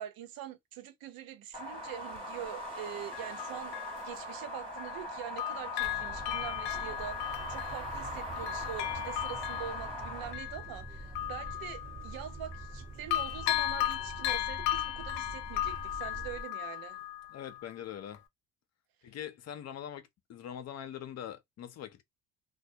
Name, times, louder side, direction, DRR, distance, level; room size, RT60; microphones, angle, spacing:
voice 1, 0.0-3.8 4.0-17.0, right 10 dB, 60° right, 0.7 m, -44 dB
sound 1, 1.5-10.3, equal, 15° right, 1.1 m, -41 dB
Bell, 2.2-2.3 3.1-5.1 5.4-12.8 13.1-17.7 18.1-18.2, left 14 dB, 85° left, 0.5 m, -36 dB
sound 2, 5.8-16.4, right 3 dB, 30° right, 1.0 m, -46 dB
voice 2, 17.3-18.2 19.0-22.0, left 10 dB, 40° left, 0.6 m, -43 dB
2.2 x 2.1 x 2.6 m
supercardioid pair, 75°, 39 cm